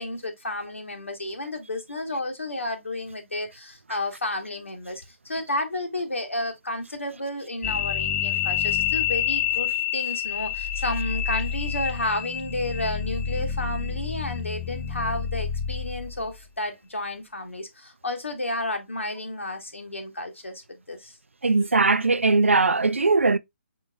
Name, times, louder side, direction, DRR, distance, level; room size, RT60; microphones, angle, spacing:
voice 1, 0.0-21.2, left 1 dB, 80° left, 1.4 m, -32 dB
sound 1, 7.6-16.2, left 9 dB, 10° left, 0.4 m, -28 dB
voice 2, 21.4-23.4, right 3 dB, 80° right, 0.4 m, -20 dB
4.5 x 4.0 x 2.3 m
figure-of-eight pair, 140°, 7 cm